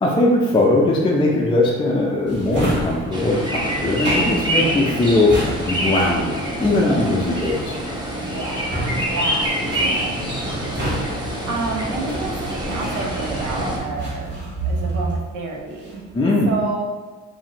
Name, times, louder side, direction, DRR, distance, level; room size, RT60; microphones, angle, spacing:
voice 1, 0.0-5.4 5.6-7.7 16.1-16.5, left 2 dB, 15° left, -3 dB, 0.4 m, -19 dB
Drawer open or close, 2.3-13.5 14.0-15.3 15.6-16.1, equal, 35° right, 1.2 m, -31 dB
sound 1, 3.1-13.8, equal, 15° right, 0.7 m, -26 dB
voice 2, 8.1-14.4 14.6-16.0 16.4-16.8, right 3 dB, 80° right, 0 dB, 0.6 m, -30 dB
sound 2, 9.6-15.2, right 3 dB, 65° right, 1.4 m, -31 dB
2.6 x 2.4 x 2.9 m, 1.3 s
cardioid pair, 90°, 30 cm